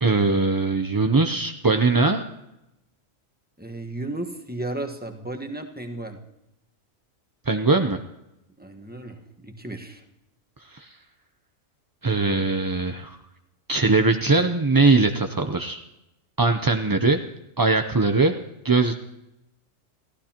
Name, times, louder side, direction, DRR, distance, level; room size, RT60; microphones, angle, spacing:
voice 1, 0.0-2.2 7.5-8.0 10.7-10.9 12.0-13.2 13.7-15.8 16.4-17.2 17.6-18.3 18.6-18.9, right 3 dB, 30° right, 6 dB, 0.4 m, -21 dB
voice 2, 3.6-6.2 8.6-10.0, right 2 dB, 5° right, 3 dB, 1.3 m, -34 dB
29.5 x 14.5 x 2.9 m, 0.90 s
omnidirectional pair, 1.4 m